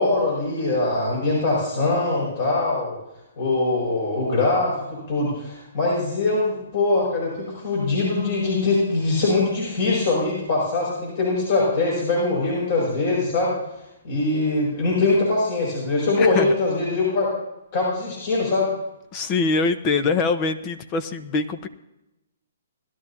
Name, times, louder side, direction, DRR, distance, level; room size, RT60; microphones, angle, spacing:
voice 1, 0.0-3.0 3.4-13.6 14.0-17.3 17.7-18.7, left 2 dB, 55° left, -4 dB, 6.0 m, -22 dB
voice 2, 16.2-16.5 19.1-21.7, left 4 dB, 30° left, 9 dB, 1.0 m, -23 dB
19.5 x 12.0 x 2.8 m, 0.91 s
hypercardioid pair, 145°, 0 cm